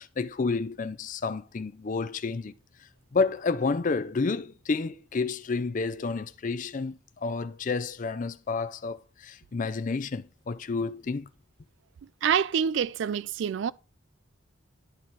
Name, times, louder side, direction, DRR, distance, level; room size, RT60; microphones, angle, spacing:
voice 1, 0.0-2.5 3.1-11.3, left 4 dB, 40° left, 0.4 m, -30 dB
voice 2, 12.2-13.7, right 7 dB, 60° right, 0.3 m, -26 dB
10.5 x 4.1 x 4.6 m
head